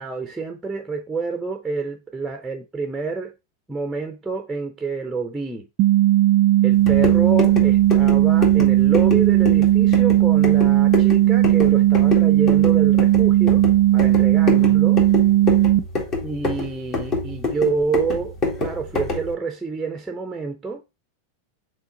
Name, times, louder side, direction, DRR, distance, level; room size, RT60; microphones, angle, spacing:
voice 1, 0.0-3.3 3.7-5.7 6.6-13.6 13.9-15.0 16.2-20.8, right 4 dB, 5° right, 0.7 m, -28 dB
sound 1, 5.8-15.8, right 14 dB, 45° right, 0.4 m, -16 dB
sound 2, 6.7-19.3, left 2 dB, 35° left, 2.1 m, -27 dB
6.2 x 3.8 x 4.0 m
figure-of-eight pair, 90°, 0 cm